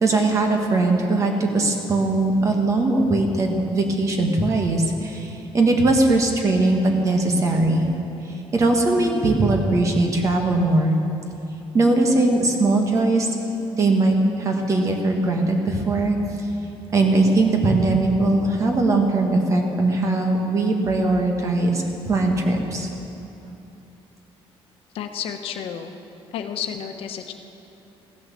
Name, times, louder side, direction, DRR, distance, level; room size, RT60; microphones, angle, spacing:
voice 1, 0.0-7.9 8.5-11.0 11.7-13.3 13.7-16.5 16.9-22.9, right 2 dB, 30° right, 2 dB, 1.6 m, -20 dB
voice 2, 24.9-25.9 26.3-27.3, left 8 dB, 65° left, 6 dB, 1.1 m, -31 dB
15.5 x 11.0 x 7.5 m, 2.9 s
cardioid pair, 175°, 10 cm